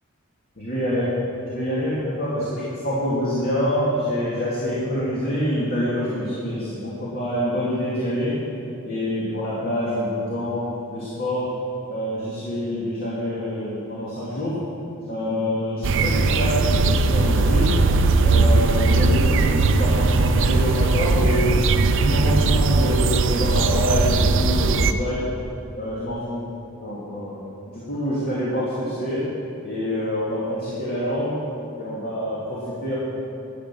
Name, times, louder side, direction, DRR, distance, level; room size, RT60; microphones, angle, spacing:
voice 1, 0.6-1.1 1.5-8.3 8.9-11.5 11.9-14.5 15.1-17.7 18.2-21.6 21.9-25.3 25.8-26.4 26.8-27.4 27.7-29.2 29.6-31.4 31.8-33.0, equal, 45° left, -8 dB, 2.6 m, -26 dB
sound 1, 15.8-24.9, right 3 dB, 60° right, 0.6 m, -19 dB
12.5 x 8.1 x 7.0 m, 2.6 s
head